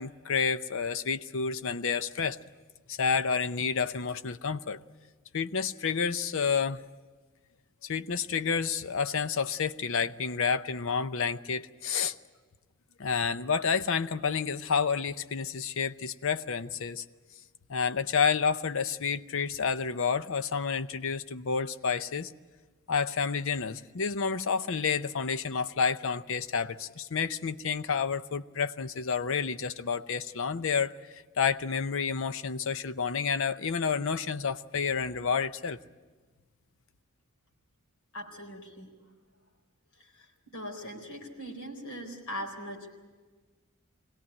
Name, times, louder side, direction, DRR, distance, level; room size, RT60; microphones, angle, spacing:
voice 1, 0.0-2.4 2.9-4.8 5.3-6.8 7.8-12.1 13.0-17.0 17.7-22.3 22.9-35.8, left 6 dB, 65° left, 13 dB, 0.7 m, -30 dB
voice 2, 38.1-38.9 39.9-42.9, equal, 90° left, 2 dB, 4.2 m, -41 dB
23.0 x 17.5 x 9.8 m, 1.4 s
head